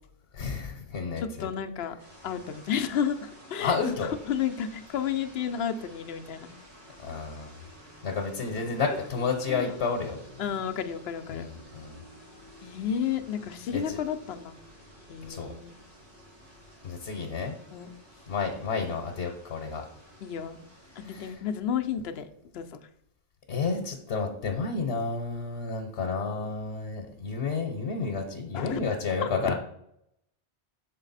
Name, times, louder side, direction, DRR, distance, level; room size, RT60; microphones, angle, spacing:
voice 1, 0.3-1.5 3.6-4.1 7.0-7.6 8.0-10.2 11.3-12.0 13.7-14.0 15.3-15.5 16.8-17.6 18.3-19.8 21.0-21.4 23.5-29.5, left 4 dB, 90° left, 2 dB, 1.1 m, -31 dB
voice 2, 1.2-2.0 2.2-3.8 4.3-6.5 9.5-9.8 10.4-11.5 12.6-14.6 15.1-15.7 17.7-17.9 20.2-20.6 21.0-22.8 28.5-28.8 29.2-29.5, left 8 dB, 70° left, 8 dB, 0.8 m, -32 dB
sound 1, 2.0-21.3, equal, 45° right, 2.1 m, -52 dB
6.5 x 4.1 x 4.0 m, 0.75 s
omnidirectional pair, 1.1 m